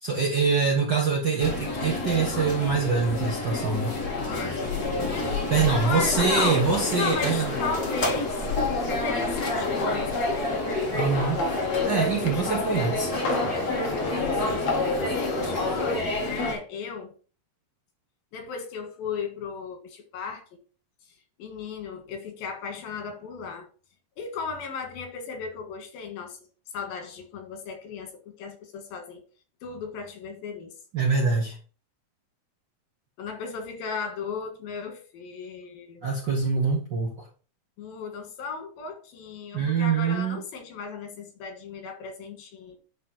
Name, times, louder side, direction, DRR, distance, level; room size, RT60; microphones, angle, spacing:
voice 1, 0.0-4.0 5.5-7.5 10.9-11.4 11.8-13.1 30.9-31.6 36.0-37.3 39.5-40.4, right 5 dB, 55° right, 1.2 m, -24 dB
sound 1, 1.4-16.5, left 2 dB, 30° left, 2.3 m, -29 dB
voice 2, 4.3-5.5 5.8-6.6 6.9-8.5 8.9-10.7 14.0-14.7 15.1-17.1 18.3-20.5 21.4-23.7 24.2-26.4 26.7-29.2 29.6-30.7 33.2-36.1 37.8-42.8, left 5 dB, 85° left, 3.4 m, -35 dB
sound 2, 5.9-16.0, left 2 dB, 55° left, 2.1 m, -33 dB
10.5 x 4.1 x 4.3 m
omnidirectional pair, 4.0 m